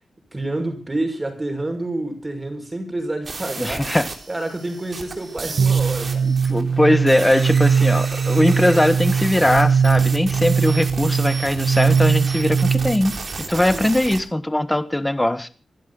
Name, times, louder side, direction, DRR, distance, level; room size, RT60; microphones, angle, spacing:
voice 1, 0.3-3.9 4.3-6.3 13.7-13.9, right 2 dB, 25° right, 6.2 m, -28 dB
sound 1, 3.2-14.2, right 3 dB, 50° right, 3.5 m, -33 dB
voice 2, 3.6-4.1 6.2-13.1 13.4-15.5, left 1 dB, 10° left, 1.6 m, -20 dB
sound 2, 5.6-13.1, right 6 dB, 65° right, 0.9 m, -20 dB
26.0 x 11.5 x 4.1 m
cardioid pair, 70°, 0 cm